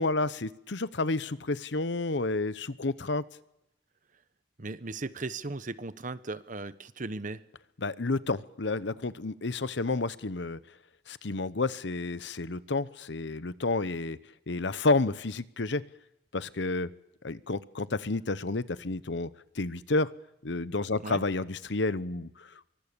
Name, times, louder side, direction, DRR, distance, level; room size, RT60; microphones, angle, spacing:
voice 1, 0.0-3.2 7.8-10.6 11.1-14.2 14.5-15.8 16.3-16.9 17.2-19.3 19.5-20.1 20.4-22.7, left 3 dB, 70° left, 16 dB, 0.9 m, -30 dB
voice 2, 4.6-7.4 21.0-21.2, right 3 dB, 45° right, 14 dB, 1.0 m, -37 dB
25.0 x 24.0 x 6.9 m, 0.83 s
head